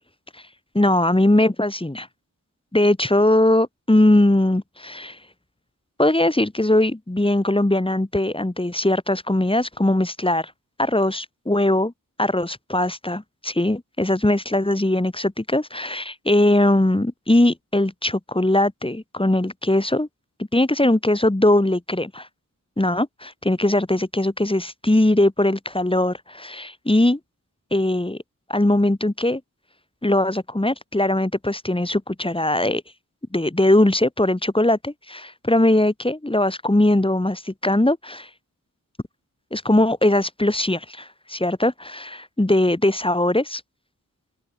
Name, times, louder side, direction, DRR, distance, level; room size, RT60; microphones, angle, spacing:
voice 1, 0.7-2.1 2.7-5.2 6.0-10.5 10.8-11.9 12.2-20.1 20.4-22.3 22.8-27.2 27.7-28.2 28.5-29.4 30.0-32.8 33.3-38.3 39.5-43.6, left 1 dB, 15° left, 4.8 m, -20 dB
open air
wide cardioid pair, 75°, 33 cm